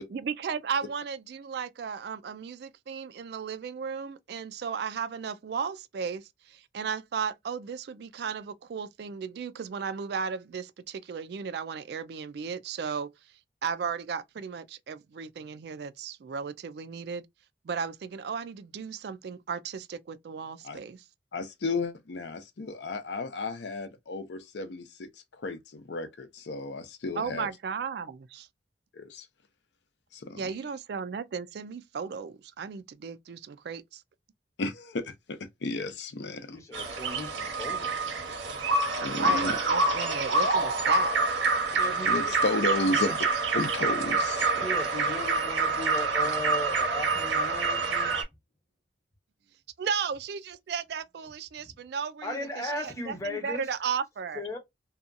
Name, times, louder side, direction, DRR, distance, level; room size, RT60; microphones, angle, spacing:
voice 1, 0.1-13.1 13.6-17.2 17.6-21.0 27.2-28.5 30.4-34.0 39.2-41.4 49.8-54.4, right 6 dB, 60° right, 0.3 m, -35 dB
voice 2, 21.3-27.5 28.9-29.3 30.1-30.5 34.6-36.6 39.0-39.6 42.0-43.2 43.5-44.6, left 2 dB, 70° left, 0.5 m, -33 dB
voice 3, 36.5-38.5 41.7-42.4 44.6-48.2 51.6-51.7 52.2-53.7 54.4-54.6, left 1 dB, 15° left, 0.8 m, -37 dB
sound 1, 36.7-48.2, right 3 dB, 85° right, 1.0 m, -27 dB
2.7 x 2.3 x 2.5 m
head